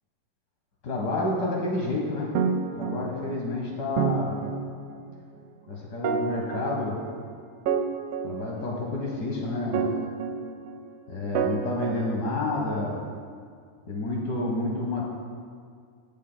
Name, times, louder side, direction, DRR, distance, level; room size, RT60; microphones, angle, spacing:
voice 1, 0.8-2.3 2.7-4.3 5.7-7.0 8.2-10.0 11.1-13.0 13.8-15.0, left 2 dB, 80° left, -2 dB, 0.9 m, -29 dB
sound 1, 2.3-3.5 4.0-5.1 6.0-7.2 7.7-9.1 9.7-10.9 11.3-12.8, right 6 dB, 85° right, 1.3 m, -29 dB
19.5 x 7.2 x 2.2 m, 2.1 s
omnidirectional pair, 3.4 m